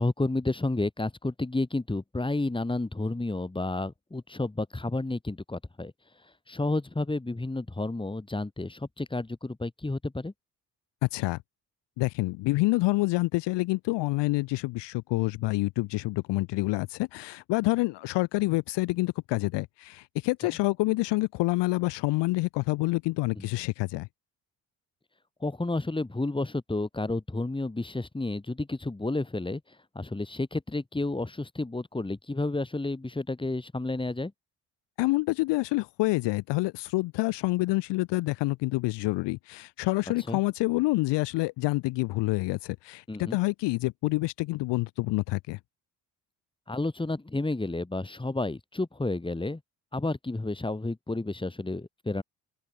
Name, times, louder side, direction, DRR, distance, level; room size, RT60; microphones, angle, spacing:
voice 1, 0.0-5.9 6.5-10.3 23.3-23.5 25.4-29.6 29.9-34.3 40.3-40.4 43.1-43.4 46.7-49.6 49.9-52.2, left 2 dB, 10° left, 1.4 m, -31 dB
voice 2, 11.0-11.4 12.0-24.1 35.0-45.6, left 21 dB, 65° left, 0.5 m, -27 dB
open air
hypercardioid pair, 50°, 45 cm